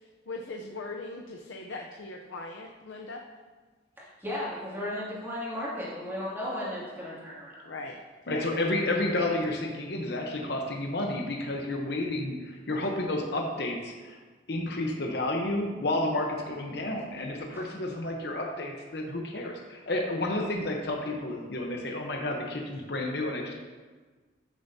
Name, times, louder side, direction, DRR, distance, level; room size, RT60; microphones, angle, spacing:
voice 1, 0.3-3.2 7.6-8.0 8.3-8.5, left 3 dB, 85° left, 1 dB, 0.7 m, -39 dB
voice 2, 4.0-7.7 17.5-17.7, left 1 dB, 10° right, -7 dB, 2.3 m, -35 dB
voice 3, 8.3-14.2 14.5-23.5, left 1 dB, 55° left, 1 dB, 0.9 m, -31 dB
13.5 x 6.9 x 2.8 m, 1.4 s
head